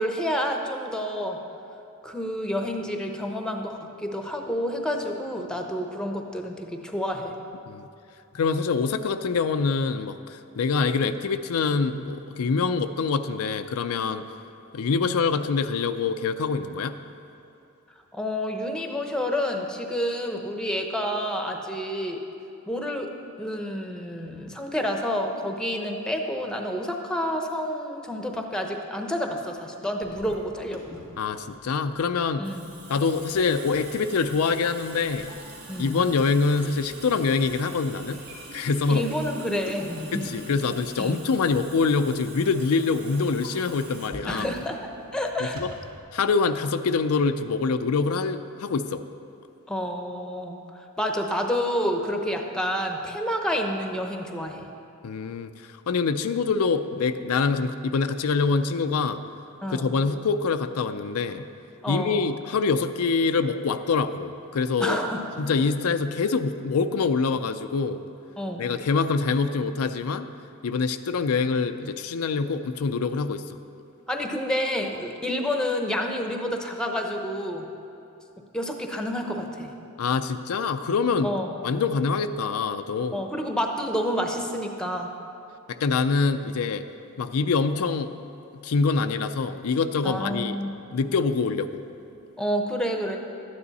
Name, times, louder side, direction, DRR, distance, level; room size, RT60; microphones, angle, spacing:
voice 1, 0.0-1.4 2.0-7.4 18.1-22.2 22.7-23.1 23.4-31.0 32.4-32.7 35.7-36.0 38.9-40.3 41.0-41.2 44.3-44.8 45.1-45.6 49.7-54.7 59.6-59.9 61.8-62.3 64.8-65.3 68.4-68.7 74.1-77.7 78.4-79.7 81.2-81.6 83.1-85.1 90.0-90.7 92.4-93.2, equal, 5° left, 3 dB, 0.8 m, -29 dB
voice 2, 8.3-14.2 14.7-17.0 31.2-32.5 32.9-35.3 35.8-38.2 38.5-39.1 40.1-44.5 45.6-45.7 46.1-49.0 55.0-55.5 55.9-59.2 59.7-61.5 61.9-65.0 65.4-68.0 68.6-70.3 70.6-73.4 80.0-81.3 81.6-83.2 85.7-86.9 87.2-88.1 88.6-90.6 90.9-91.8, left 4 dB, 85° left, 9 dB, 0.5 m, -25 dB
Water tap faucet / Sink (filling or washing) / Drip, 30.0-46.0, right 1 dB, 85° right, 2.3 m, -44 dB
12.5 x 9.6 x 4.1 m, 2.8 s
head